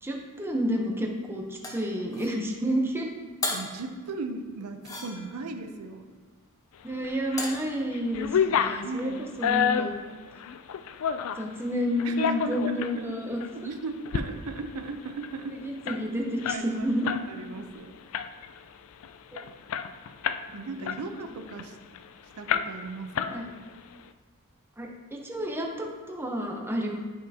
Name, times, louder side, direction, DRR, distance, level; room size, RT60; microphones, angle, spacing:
voice 1, 0.0-3.1 6.8-9.9 11.4-13.4 15.6-17.1 19.3-19.4 20.5-20.7 23.3-23.5 24.8-27.0, equal, 10° right, 1 dB, 0.7 m, -30 dB
sound 1, 1.6-2.4 3.4-3.8 4.8-5.5 7.4-7.7, left 2 dB, 15° left, 0.9 m, -34 dB
voice 2, 3.5-6.2 8.8-9.3 12.0-13.2 13.5-15.6 16.5-17.0 17.3-17.9 20.5-21.8 22.3-23.5, right 3 dB, 80° right, 6 dB, 0.6 m, -37 dB
sound 2, 7.0-7.6 7.9-11.5 12.0-13.0 13.4-13.5 13.9-14.3 14.6-14.7 14.9-17.3 17.6-17.8 18.1-18.6 19.0-19.1 19.4-20.5 20.9-22.0 22.5-22.9 23.2-23.8, left 8 dB, 65° left, 0.3 m, -29 dB
9.8 x 5.3 x 2.7 m, 1.4 s
head